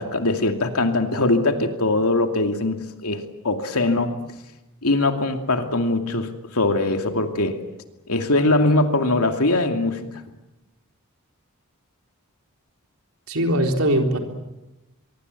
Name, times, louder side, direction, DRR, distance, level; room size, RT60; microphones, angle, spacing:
voice 1, 0.0-2.8 3.0-4.1 4.8-7.6 8.1-10.1, left 2 dB, 80° left, 5 dB, 2.6 m, -21 dB
voice 2, 13.3-14.2, right 1 dB, 70° right, 3 dB, 3.9 m, -20 dB
24.0 x 23.5 x 8.4 m, 0.98 s
head